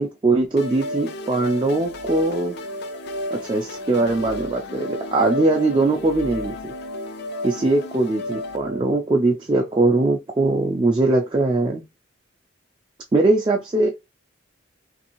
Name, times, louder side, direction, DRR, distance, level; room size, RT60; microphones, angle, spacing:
voice 1, 0.0-2.6 3.3-6.7 7.4-11.8 13.1-13.9, right 2 dB, 25° right, 0.3 m, -21 dB
sound 1, 0.6-8.6, left 3 dB, 50° left, 0.4 m, -37 dB
sound 2, 0.6-8.8, equal, 60° right, 0.7 m, -34 dB
3.3 x 2.6 x 2.9 m
head